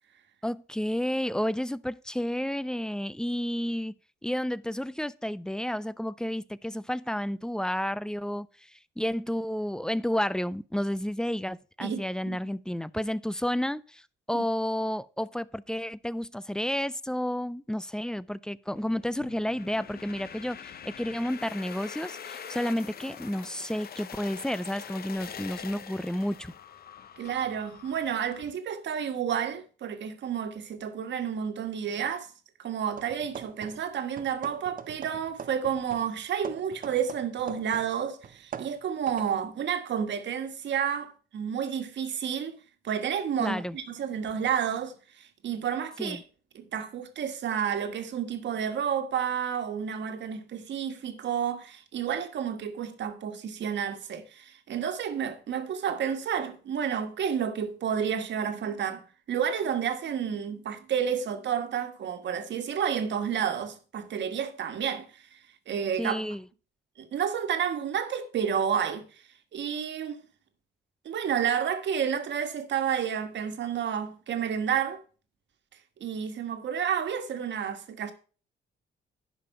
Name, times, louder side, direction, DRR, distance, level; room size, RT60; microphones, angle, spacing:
voice 1, 0.4-3.9 4.2-26.5 43.4-43.8 46.0-46.2 66.0-66.4, equal, 5° left, 0.4 m, -31 dB
sound 1, 18.8-28.5, left 8 dB, 50° left, 0.8 m, -44 dB
voice 2, 27.2-32.3 32.6-42.6 42.8-46.2 46.5-65.4 65.7-66.2 67.0-69.1 69.5-70.2 71.0-75.0 76.0-78.1, right 8 dB, 65° right, 1.5 m, -30 dB
sound 2, 32.9-33.9 34.2-37.9 38.2-39.4, right 8 dB, 45° right, 0.7 m, -43 dB
11.0 x 5.1 x 5.5 m
cardioid pair, 90°, 20 cm